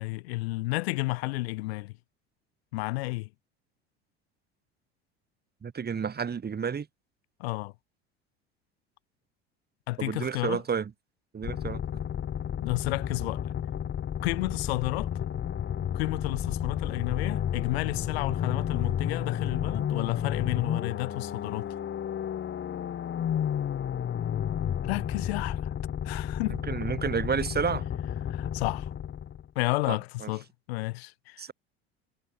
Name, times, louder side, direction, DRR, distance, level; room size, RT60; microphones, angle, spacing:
voice 1, 0.0-1.9 2.7-3.3 7.4-7.7 9.9-10.6 12.6-13.5 14.2-15.1 15.9-21.7 24.9-25.7 26.0-26.6 28.3-28.9 29.5-31.4, left 22 dB, 75° left, 1.2 m, -31 dB
voice 2, 5.6-6.9 10.0-10.9 11.3-11.8 26.7-27.9 29.9-30.3 31.4-31.5, right 6 dB, 30° right, 4.2 m, -30 dB
sound 1, 11.4-29.5, left 9 dB, 35° left, 2.0 m, -32 dB
hypercardioid pair, 75°, 32 cm